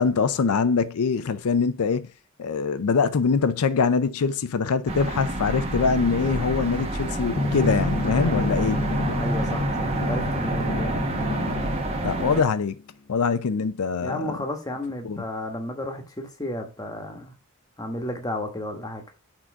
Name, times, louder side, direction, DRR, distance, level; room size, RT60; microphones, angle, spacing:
voice 1, 0.0-2.1 2.4-8.8 12.0-12.8 13.1-14.4 15.0-15.2, left 5 dB, 85° left, 0.5 m, -23 dB
sound 1, 4.9-12.4, right 1 dB, 25° right, 1.0 m, -29 dB
Drum, 7.3-12.4, left 1 dB, 55° left, 1.1 m, -28 dB
voice 2, 8.1-11.0 14.0-17.3 17.8-19.0, left 1 dB, 15° left, 1.1 m, -33 dB
6.1 x 3.8 x 4.6 m
head